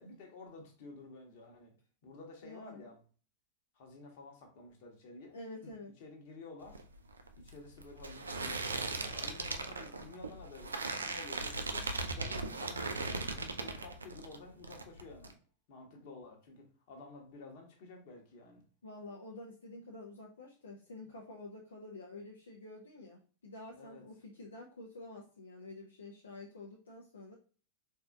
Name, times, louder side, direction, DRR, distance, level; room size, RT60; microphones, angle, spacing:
voice 1, 0.0-1.7 2.0-3.0 3.7-5.4 5.6-5.7 6.0-6.8 7.4-15.4 15.7-18.6 23.7-24.0, left 3 dB, 50° left, 1.1 m, -52 dB
voice 2, 2.4-2.9 5.3-5.9 18.8-27.4, left 2 dB, 70° left, 0.6 m, -49 dB
sound 1, 6.6-14.4 14.6-15.3, right 3 dB, 75° right, 0.4 m, -38 dB
4.1 x 2.7 x 2.3 m
figure-of-eight pair, 90°, 0 cm